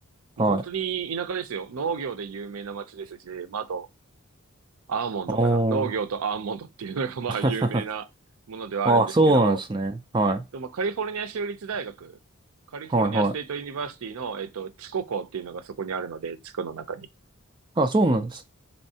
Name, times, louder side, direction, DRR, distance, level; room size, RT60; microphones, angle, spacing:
voice 1, 0.4-3.9 4.9-8.1 8.5-9.6 10.5-12.2 12.7-17.1, right 6 dB, 85° right, 0.5 m, -32 dB
voice 2, 5.3-5.9 7.4-7.8 8.9-10.4 12.9-13.3 17.8-18.4, right 2 dB, 20° right, 0.4 m, -22 dB
4.4 x 3.1 x 2.8 m
head